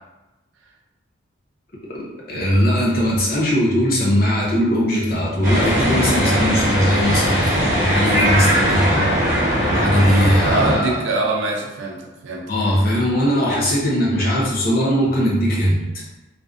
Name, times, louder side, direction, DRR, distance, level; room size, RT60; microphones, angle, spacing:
voice 1, 2.3-11.0 12.5-16.0, equal, 45° left, -4 dB, 0.6 m, -20 dB
sound 1, 5.4-10.8, equal, 40° right, 0.8 m, -19 dB
voice 2, 10.4-12.5, right 2 dB, 70° right, 0 dB, 0.4 m, -24 dB
2.5 x 2.1 x 2.4 m, 1.0 s
head